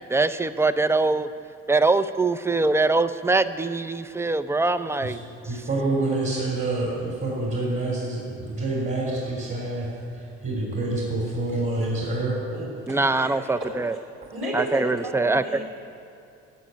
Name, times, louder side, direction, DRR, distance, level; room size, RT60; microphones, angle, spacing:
voice 1, 0.1-1.3 1.7-5.2 12.9-13.9 14.5-15.6, right 3 dB, 10° right, 13 dB, 0.4 m, -23 dB
voice 2, 5.4-12.4, right 2 dB, 45° right, -4 dB, 3.3 m, -27 dB
voice 3, 12.5-13.5 14.3-15.6, right 1 dB, 80° right, -3 dB, 3.1 m, -34 dB
12.5 x 6.7 x 9.1 m, 2.6 s
cardioid pair, 90°, 30 cm